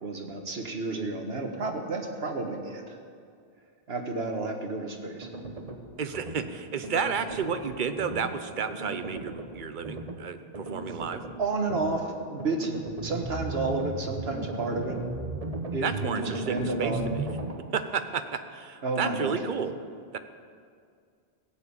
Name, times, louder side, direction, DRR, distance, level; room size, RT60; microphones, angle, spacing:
voice 1, 0.0-3.0 3.9-5.3 11.4-15.0 15.7-17.1 18.8-19.4, right 3 dB, 75° right, 3 dB, 1.7 m, -31 dB
sound 1, 5.2-5.8 6.1-6.5 6.8-7.7 8.0-8.3 8.7-9.5 9.8-10.2 10.5-11.4 11.7-12.0 12.4-17.5, right 2 dB, 35° right, 1.2 m, -36 dB
voice 2, 6.0-11.2 15.8-17.2 17.7-19.7 20.1-20.2, right 6 dB, 55° right, 9 dB, 0.9 m, -31 dB
16.0 x 7.2 x 8.6 m, 2.2 s
omnidirectional pair, 1.1 m